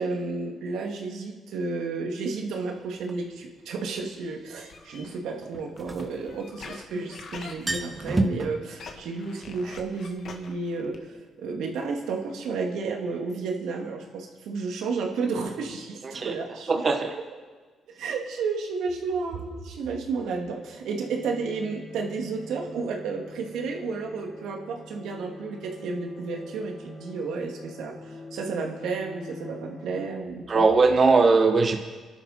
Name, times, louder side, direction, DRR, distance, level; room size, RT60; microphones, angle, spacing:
voice 1, 0.0-16.7 17.9-30.6, right 4 dB, 80° right, 2 dB, 2.4 m, -32 dB
sound 1, 3.1-3.2 5.5-6.8 7.1-7.2 7.5-8.5, right 1 dB, 20° right, 1.5 m, -29 dB
sound 2, 4.6-8.3 8.7-11.2 11.5-11.6 11.9-12.0 12.2-12.3, left 4 dB, 60° left, 1.9 m, -44 dB
voice 2, 16.0-16.3 16.7-17.1 30.5-31.8, right 4 dB, 40° right, 4 dB, 1.2 m, -20 dB
sound 3, 20.5-30.1, left 2 dB, 25° left, 3.7 m, -45 dB
27.5 x 12.0 x 4.4 m, 1.4 s
cardioid pair, 90°, 0 cm